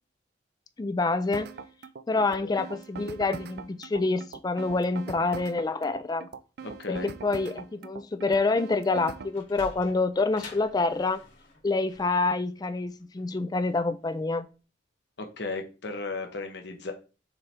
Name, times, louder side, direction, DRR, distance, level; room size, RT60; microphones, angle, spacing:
voice 1, 0.8-1.5 2.1-6.3 6.9-11.2 11.6-14.5, left 3 dB, 20° left, 0.3 m, -27 dB
sound 1, 1.3-9.4, right 5 dB, 55° right, 0.4 m, -42 dB
voice 2, 2.1-2.6 6.6-7.1 15.2-16.9, left 3 dB, 60° left, 0.9 m, -36 dB
Sliding door, 9.1-14.2, left 2 dB, 75° left, 2.7 m, -49 dB
6.6 x 3.4 x 4.3 m
head